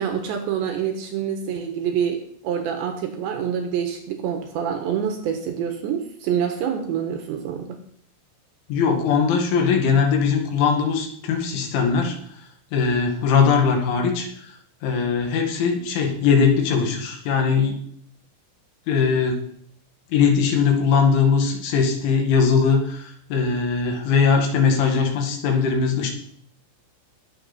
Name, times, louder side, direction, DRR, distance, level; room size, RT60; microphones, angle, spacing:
voice 1, 0.0-7.7, right 8 dB, 75° right, 4 dB, 3.3 m, -26 dB
voice 2, 8.7-12.2 12.7-14.3 14.8-17.8 18.9-19.4 20.1-26.1, left 5 dB, 80° left, 2 dB, 4.3 m, -20 dB
20.0 x 7.6 x 4.2 m, 0.63 s
omnidirectional pair, 5.5 m